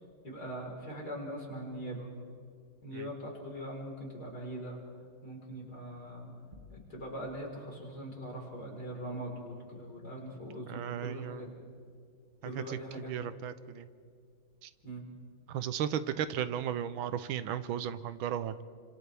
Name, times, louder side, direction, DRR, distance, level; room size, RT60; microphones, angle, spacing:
voice 1, 0.2-2.1 2.8-4.8 5.2-6.3 6.7-11.7 12.4-13.1 14.8-15.1, equal, 50° left, -2 dB, 4.8 m, -41 dB
sound 1, 6.5-7.5, left 3 dB, 25° right, 2.3 m, -55 dB
voice 2, 10.7-11.4 12.5-13.9 14.6-14.7 15.5-18.6, right 9 dB, 85° right, 13 dB, 1.5 m, -35 dB
29.0 x 26.0 x 3.4 m, 2.1 s
omnidirectional pair, 2.2 m